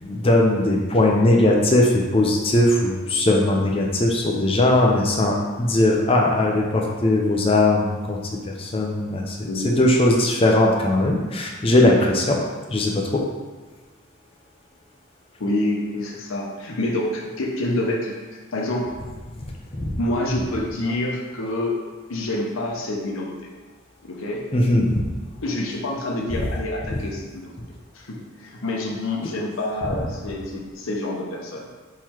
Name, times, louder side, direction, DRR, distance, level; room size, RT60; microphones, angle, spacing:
voice 1, 0.0-8.2 8.5-12.4 12.7-13.2 19.7-19.9 24.5-25.0, left 1 dB, 30° left, -1 dB, 0.5 m, -19 dB
voice 2, 9.5-9.8 15.4-18.2 18.5-18.9 20.0-21.8 22.1-23.5 24.0-24.4 25.4-27.6 27.9-31.7, left 1 dB, 90° left, -1 dB, 0.7 m, -27 dB
3.8 x 3.1 x 4.4 m, 1.3 s
head